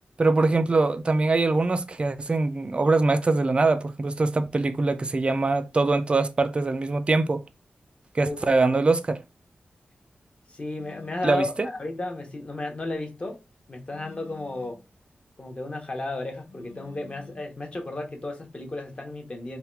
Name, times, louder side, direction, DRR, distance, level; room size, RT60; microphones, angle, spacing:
voice 1, 0.2-7.4 8.1-9.2 11.2-11.7, right 3 dB, 30° right, 0.4 m, -23 dB
voice 2, 10.5-13.4 13.7-14.8 15.4-19.6, left 2 dB, 30° left, 0.8 m, -33 dB
sound 1, 10.8-11.4 13.9-14.9 16.5-17.5, left 5 dB, 65° left, 1.1 m, -49 dB
3.5 x 2.2 x 4.4 m
wide cardioid pair, 145°, 4 cm